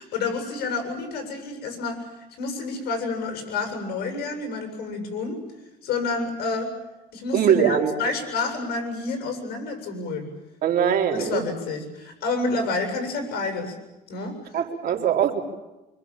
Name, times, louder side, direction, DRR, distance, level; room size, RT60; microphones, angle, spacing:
voice 1, 0.0-2.1 2.4-5.4 5.8-6.7 7.1-10.3 11.1-13.7 14.1-14.6, left 3 dB, 70° left, 5 dB, 7.6 m, -29 dB
voice 2, 7.3-7.9 10.6-11.5 14.5-15.4, right 8 dB, 60° right, 2 dB, 3.2 m, -21 dB
26.0 x 25.0 x 7.4 m, 1.0 s
cardioid pair, 110°, 17 cm